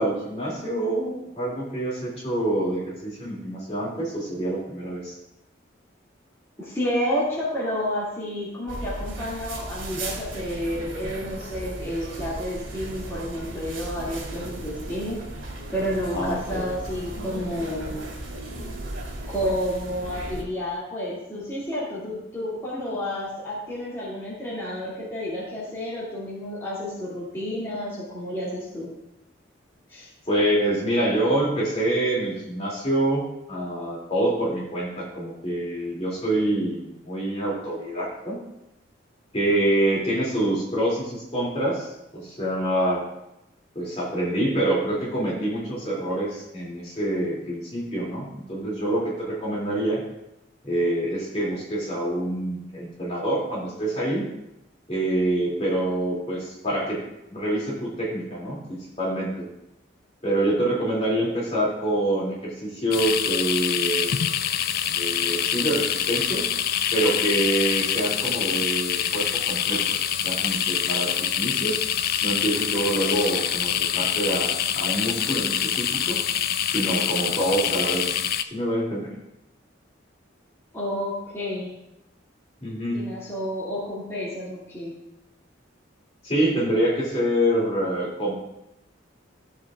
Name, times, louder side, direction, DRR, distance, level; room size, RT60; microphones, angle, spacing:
voice 1, 0.0-5.2 16.1-16.6 30.3-38.4 39.3-43.1 43.7-50.0 50.6-54.3 54.9-57.0 57.3-59.4 60.2-64.1 64.9-66.5 66.9-69.9 70.2-71.8 72.2-76.2 76.7-78.2 78.5-79.1 82.6-83.0 86.2-88.4, right 1 dB, 30° left, -4 dB, 2.5 m, -26 dB
voice 2, 6.6-15.3 15.7-18.0 19.3-28.9 29.9-30.1 80.7-81.7 82.9-85.0, equal, 15° left, -9 dB, 2.2 m, -30 dB
sound 1, 8.7-20.4, right 1 dB, 85° right, 2.4 m, -36 dB
sound 2, 62.9-78.4, left 9 dB, 50° left, 0.3 m, -25 dB
13.5 x 7.5 x 2.4 m, 0.89 s
head